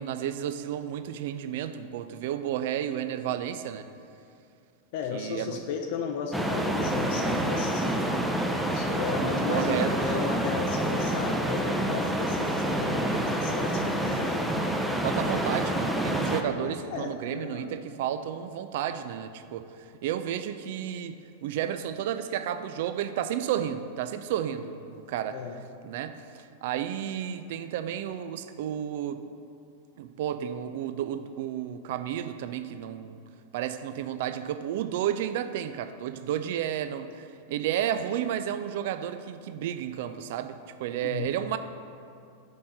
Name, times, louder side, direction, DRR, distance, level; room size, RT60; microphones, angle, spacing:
voice 1, 0.0-3.9 5.1-5.6 9.2-10.2 15.0-21.1 21.4-25.4 25.8-29.2 30.0-33.2 33.5-41.6, right 10 dB, 50° right, 11 dB, 0.3 m, -32 dB
voice 2, 4.9-8.3 8.7-14.4 16.6-17.8 25.3-25.6 41.0-41.3, left 6 dB, 50° left, 3 dB, 0.5 m, -35 dB
sound 1, 6.3-16.4, right 1 dB, 5° right, 0.6 m, -28 dB
5.6 x 5.3 x 6.4 m, 2.5 s
figure-of-eight pair, 90°, 0 cm